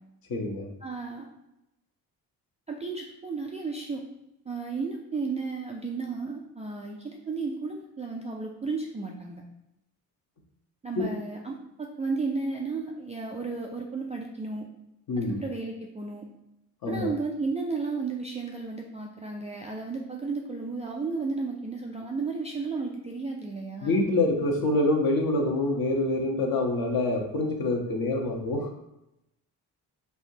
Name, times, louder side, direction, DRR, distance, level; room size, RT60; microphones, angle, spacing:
voice 1, 0.3-0.7 11.0-11.1 15.1-15.4 16.8-17.1 23.8-28.7, left 2 dB, 45° left, 1 dB, 0.9 m, -26 dB
voice 2, 0.8-1.3 2.7-4.0 4.5-9.4 10.8-14.7 15.2-16.3 16.9-24.0, right 4 dB, 15° right, -1 dB, 0.3 m, -33 dB
3.3 x 2.8 x 2.7 m, 0.87 s
hypercardioid pair, 40°, 50 cm